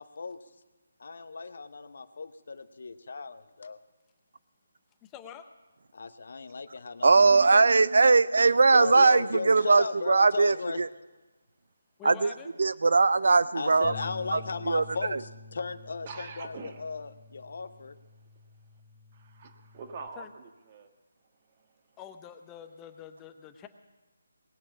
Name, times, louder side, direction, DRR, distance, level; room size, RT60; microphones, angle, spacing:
voice 1, 0.0-0.4 1.0-3.8 5.9-7.7 8.7-10.8 13.5-18.0, left 4 dB, 60° left, 0.8 m, -36 dB
voice 2, 5.0-5.5 12.0-12.5 20.2-20.3 22.0-23.7, left 9 dB, 15° left, 0.8 m, -46 dB
voice 3, 7.0-10.9 12.0-12.3 12.6-13.9 14.3-14.4 14.6-14.8 15.1-15.2, right 4 dB, 65° right, 0.4 m, -21 dB
Bass guitar, 13.8-20.1, left 4 dB, 35° left, 1.2 m, -48 dB
voice 4, 16.0-16.8 17.5-17.6 18.2-18.8 19.1-20.9 21.2-22.0, right 5 dB, 30° right, 1.4 m, -46 dB
19.5 x 7.6 x 8.4 m
figure-of-eight pair, 155°, 0 cm